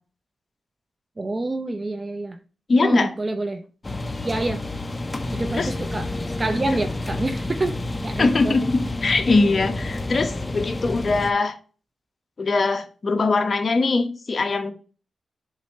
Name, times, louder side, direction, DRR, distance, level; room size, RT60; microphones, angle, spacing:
voice 1, 1.2-2.4 2.8-3.6 4.2-4.6 5.3-7.7 8.0-8.5, right 2 dB, 30° right, 0.7 m, -27 dB
voice 2, 2.7-3.1 5.5-5.7 8.2-11.6 12.4-14.7, left 3 dB, 45° left, 1.0 m, -21 dB
sound 1, 3.8-11.3, left 2 dB, 25° left, 0.7 m, -29 dB
7.3 x 2.7 x 5.3 m
wide cardioid pair, 95°, 0 cm